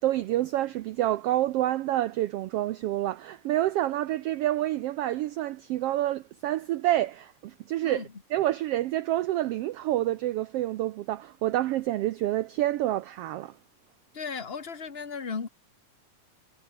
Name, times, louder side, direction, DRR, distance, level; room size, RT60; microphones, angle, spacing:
voice 1, 0.0-13.5, right 14 dB, 85° right, 1.3 m, -28 dB
voice 2, 14.1-15.5, left 5 dB, 30° left, 1.1 m, -35 dB
omnidirectional pair, 3.5 m